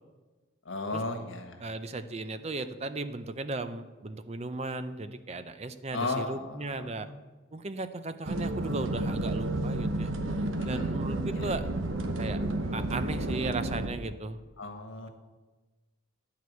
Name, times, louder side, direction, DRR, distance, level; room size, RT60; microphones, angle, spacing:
voice 1, 0.7-1.6 5.9-7.1 10.6-11.0 11.3-11.5 14.6-15.1, left 2 dB, 75° left, 5 dB, 1.5 m, -35 dB
voice 2, 1.6-7.1 7.5-10.1 10.7-11.7 12.2-12.4 12.7-14.4, right 2 dB, 35° right, 11 dB, 0.5 m, -36 dB
sound 1, 8.2-13.9, right 2 dB, 85° right, 1.0 m, -31 dB
11.0 x 4.7 x 8.2 m, 1.2 s
head